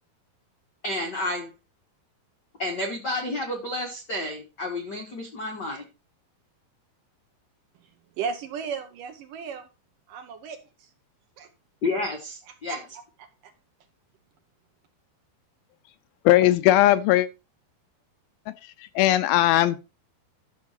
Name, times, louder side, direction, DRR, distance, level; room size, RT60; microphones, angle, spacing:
voice 1, 0.8-1.5 2.6-5.8 11.8-12.8, left 2 dB, 60° left, 1.1 m, -30 dB
voice 2, 8.2-9.7 10.1-10.9 11.4-11.5 12.7-12.8 13.2-13.5, right 6 dB, 70° right, 2.5 m, -35 dB
voice 3, 16.3-17.3 19.0-19.8, left 14 dB, 80° left, 2.3 m, -18 dB
11.5 x 6.6 x 4.4 m
omnidirectional pair, 4.5 m